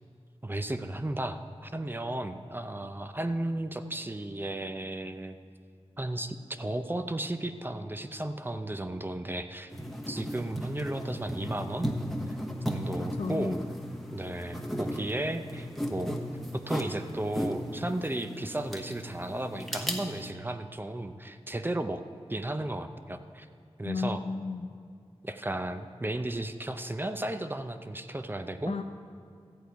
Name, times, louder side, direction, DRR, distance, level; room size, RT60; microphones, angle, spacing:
voice 1, 0.4-5.4 6.0-9.7 10.1-11.9 12.6-13.6 14.1-16.2 16.5-22.0 22.3-23.5 23.8-24.2 25.2-28.8, right 1 dB, 20° right, 8 dB, 0.6 m, -34 dB
sound 1, 9.7-20.3, equal, ahead, 1.1 m, -36 dB
voice 2, 13.2-13.6 23.8-24.7 28.7-28.8, left 4 dB, 70° left, 5 dB, 0.5 m, -33 dB
14.0 x 8.5 x 4.6 m, 2.3 s
wide cardioid pair, 65°, 11 cm